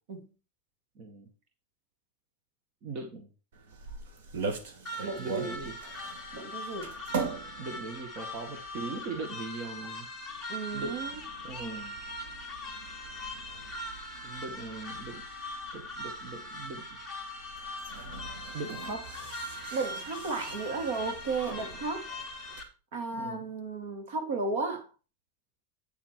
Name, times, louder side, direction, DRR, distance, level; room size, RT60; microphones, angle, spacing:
voice 1, 1.0-1.3 2.8-3.3 5.2-5.7 7.6-10.1 10.7-11.1 11.4-11.9 14.2-15.3 15.7-16.8 18.5-19.0 23.1-23.5, right 3 dB, 35° right, 1.8 m, -40 dB
sound 1, 3.5-22.6, right 4 dB, 80° right, 2.4 m, -43 dB
sound 2, 4.8-22.6, left 1 dB, ahead, 2.2 m, -41 dB
voice 2, 5.0-5.6 6.3-6.9 10.5-11.2 19.7-22.1 22.9-24.9, right 3 dB, 65° right, 2.8 m, -34 dB
9.2 x 7.0 x 4.7 m
supercardioid pair, 170°, 0 cm